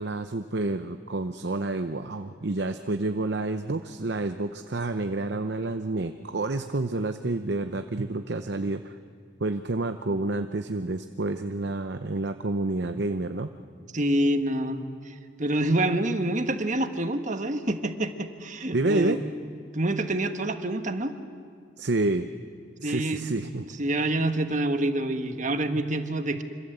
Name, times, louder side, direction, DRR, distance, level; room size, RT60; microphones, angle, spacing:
voice 1, 0.0-9.0 9.4-13.5 18.7-19.2 21.8-22.3 22.8-23.7, right 2 dB, 60° right, 8 dB, 0.8 m, -29 dB
voice 2, 13.9-19.2 19.7-21.1 22.8-23.3 23.8-26.4, right 1 dB, 40° right, 8 dB, 1.4 m, -27 dB
26.0 x 26.0 x 8.0 m, 2.2 s
head